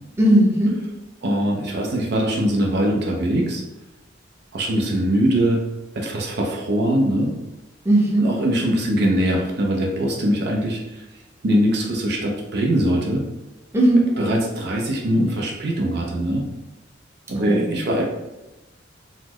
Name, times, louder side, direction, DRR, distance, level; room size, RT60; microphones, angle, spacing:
voice 1, 0.2-0.8 7.8-8.3 13.7-14.1 17.3-17.8, right 1 dB, 15° right, -4 dB, 0.6 m, -17 dB
voice 2, 1.2-3.6 4.5-5.6 5.9-7.3 8.2-11.0 11.4-13.2 14.2-16.4 17.3-18.0, right 1 dB, 60° right, 0 dB, 0.5 m, -22 dB
4.0 x 2.0 x 2.9 m, 1.0 s
head